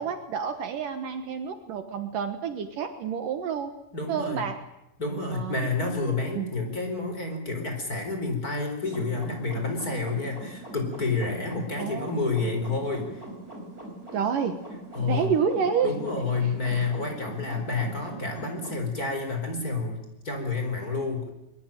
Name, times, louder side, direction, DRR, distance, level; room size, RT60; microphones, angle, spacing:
voice 1, 0.0-3.7 4.1-4.6 5.3-5.6 6.4-6.5 11.8-12.1 14.1-14.6 15.1-15.9 16.4-16.9, right 7 dB, 65° right, 8 dB, 2.7 m, -29 dB
voice 2, 3.9-4.4 5.0-13.2 14.9-15.3 15.8-21.3, left 3 dB, 20° left, 4 dB, 4.6 m, -29 dB
sound 1, 8.8-18.8, right 1 dB, 20° right, 6.0 m, -42 dB
22.5 x 22.5 x 9.2 m, 0.88 s
omnidirectional pair, 4.5 m